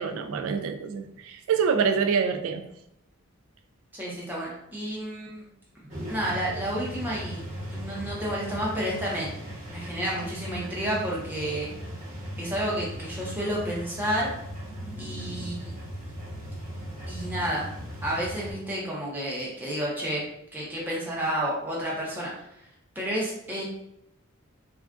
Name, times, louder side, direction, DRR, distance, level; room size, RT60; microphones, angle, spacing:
voice 1, 0.0-2.6, right 6 dB, 65° right, 7 dB, 0.3 m, -26 dB
voice 2, 3.9-5.4 6.1-7.4 7.7-9.3 9.7-11.7 12.4-14.3 15.0-15.8 17.1-17.7 18.0-20.2 20.5-22.3 23.0-23.6, equal, 10° right, -5 dB, 0.7 m, -30 dB
sound 1, 5.9-18.5, equal, 35° right, 1.0 m, -38 dB
3.4 x 2.4 x 2.4 m, 0.80 s
head